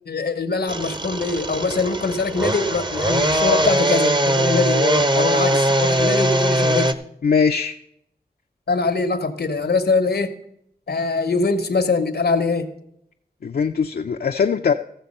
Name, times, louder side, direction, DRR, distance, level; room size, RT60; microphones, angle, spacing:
voice 1, 0.1-6.9 8.7-10.3 10.9-12.7, left 4 dB, 85° left, 10 dB, 1.0 m, -22 dB
sound 1, 0.7-6.9, right 1 dB, 30° right, 0.8 m, -21 dB
voice 2, 7.2-7.8 13.4-14.7, left 6 dB, 70° left, 5 dB, 0.5 m, -20 dB
14.5 x 6.9 x 5.3 m, 0.74 s
cardioid pair, 45°, 16 cm